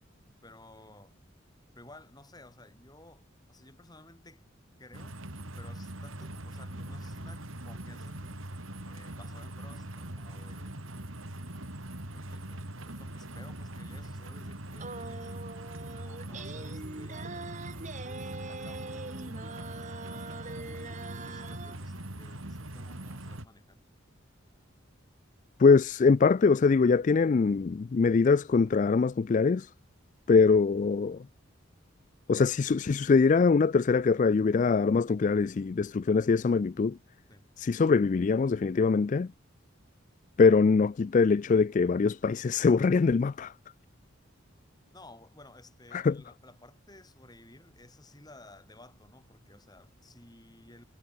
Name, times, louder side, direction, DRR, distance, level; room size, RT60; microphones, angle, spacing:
voice 1, 0.4-1.1 1.7-4.4 4.8-5.2 5.6-8.5 8.8-10.8 12.1-15.4 15.9-17.7 18.4-23.8 37.3-37.5 44.9-50.8, left 2 dB, 20° left, 6.6 m, -55 dB
sound 1, 4.9-23.4, right 1 dB, 85° right, 3.5 m, -42 dB
sound 2, 14.8-21.8, right 3 dB, 40° right, 1.8 m, -43 dB
voice 2, 25.6-29.7 30.3-31.2 32.3-37.0 37.6-39.3 40.4-43.5 45.9-46.2, left 4 dB, 40° left, 0.3 m, -23 dB
head